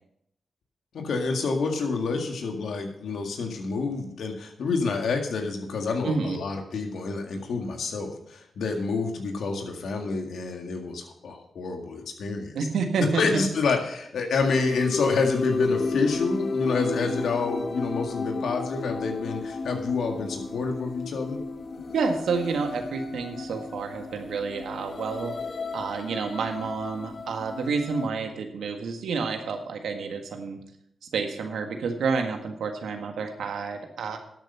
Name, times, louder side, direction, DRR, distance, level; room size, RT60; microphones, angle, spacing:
voice 1, 0.9-12.6 13.0-21.4, left 4 dB, 80° left, 3 dB, 1.9 m, -28 dB
voice 2, 6.0-6.4 12.6-13.4 21.9-25.3 25.7-30.6 31.1-34.2, right 5 dB, 85° right, 5 dB, 1.6 m, -29 dB
sound 1, 14.4-28.1, left 4 dB, 60° left, 0.8 m, -32 dB
12.0 x 8.1 x 5.6 m, 0.74 s
supercardioid pair, 45°, 0 cm